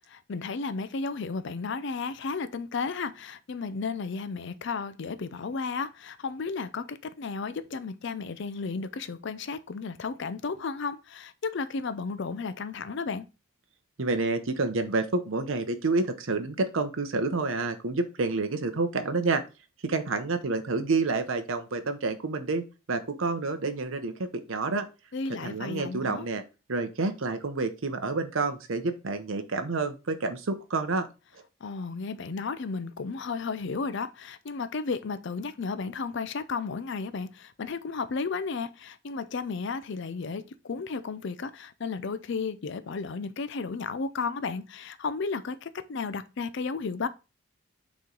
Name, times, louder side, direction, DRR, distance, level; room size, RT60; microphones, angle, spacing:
voice 1, 0.3-13.3 25.1-26.3 31.6-47.1, left 4 dB, 55° left, 0.5 m, -33 dB
voice 2, 14.0-19.4 19.8-24.9 25.4-26.4 26.7-31.1, right 3 dB, 70° right, 0.8 m, -29 dB
8.3 x 3.1 x 3.8 m
head